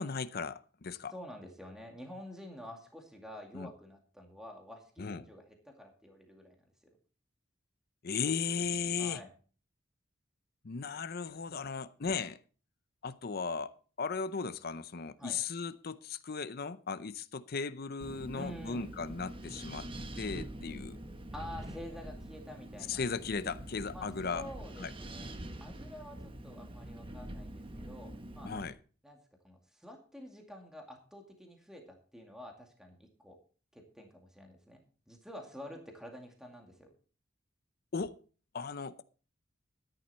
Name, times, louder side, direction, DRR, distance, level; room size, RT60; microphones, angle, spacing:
voice 1, 0.0-1.1 3.5-3.7 5.0-5.2 8.0-9.2 10.6-12.4 13.0-19.9 20.2-21.0 22.9-24.5 24.8-24.9 28.4-28.8 37.9-38.2 38.5-39.0, left 5 dB, 55° left, 0.6 m, -36 dB
voice 2, 1.1-7.0 9.0-9.3 15.2-15.4 18.3-18.9 21.3-23.0 23.9-25.3 25.6-28.5 29.0-29.2 29.4-33.4 33.7-36.9, left 1 dB, 5° right, 2.2 m, -49 dB
Wind, 18.0-28.7, right 1 dB, 30° right, 1.1 m, -45 dB
13.5 x 10.5 x 4.2 m
head